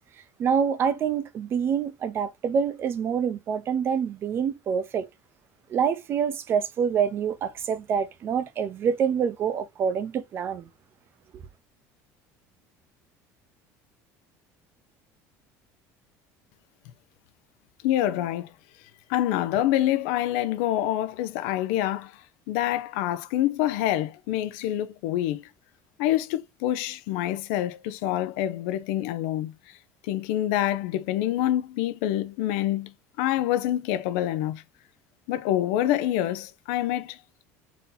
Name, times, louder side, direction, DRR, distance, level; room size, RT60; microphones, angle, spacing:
voice 1, 0.4-5.1 5.7-10.7, right 7 dB, 35° right, 0.6 m, -26 dB
voice 2, 17.8-18.5 19.1-22.1 22.5-25.4 26.0-29.5 30.1-32.9 33.2-34.6 35.3-37.2, left 13 dB, 85° left, 0.6 m, -26 dB
4.1 x 2.8 x 3.8 m
cardioid pair, 150°, 7 cm